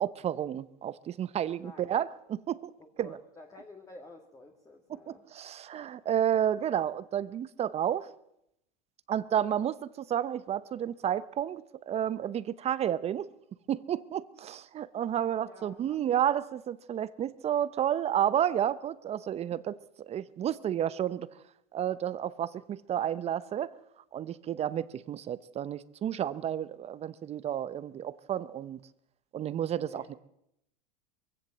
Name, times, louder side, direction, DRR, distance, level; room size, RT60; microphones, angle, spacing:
voice 1, 0.0-2.7 3.0-3.2 4.9-8.1 9.1-13.3 13.7-21.3 21.7-23.7 24.1-28.8 29.3-30.1, right 10 dB, 30° right, 0.8 m, -31 dB
voice 2, 1.6-1.9 2.8-5.2 15.4-16.0 29.8-30.1, left 2 dB, 15° left, 2.1 m, -51 dB
22.0 x 16.0 x 7.5 m
supercardioid pair, 115°, 21 cm